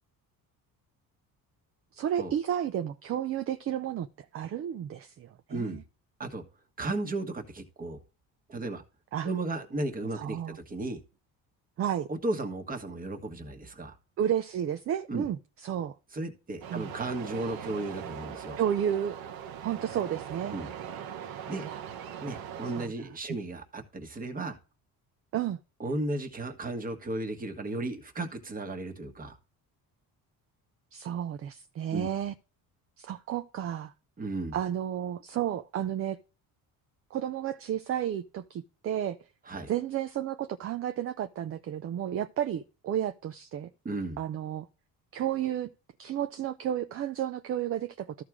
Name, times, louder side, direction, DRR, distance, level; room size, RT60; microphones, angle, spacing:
voice 1, 1.9-4.1 4.3-5.8 9.1-9.3 10.2-10.6 11.8-12.1 14.2-15.9 16.7-16.9 18.6-19.2 19.6-20.5 21.6-21.8 22.8-22.9 25.3-25.6 30.9-32.3 33.0-33.9 34.5-36.2 37.1-39.2 39.7-43.7 44.2-44.7 45.1-45.7 46.0-48.1, right 10 dB, 40° right, 0.5 m, -32 dB
voice 2, 5.5-5.8 6.2-6.4 6.8-8.0 8.5-8.8 9.2-11.0 12.1-14.0 15.1-15.2 16.1-18.6 20.5-20.7 21.5-21.7 22.2-24.6 25.8-29.4 31.9-32.1 34.2-34.5 39.5-39.7 43.8-44.2, right 2 dB, 20° right, 1.4 m, -34 dB
sound 1, 16.6-22.9, right 9 dB, 70° right, 1.3 m, -41 dB
13.5 x 4.6 x 3.7 m
cardioid pair, 170°, 37 cm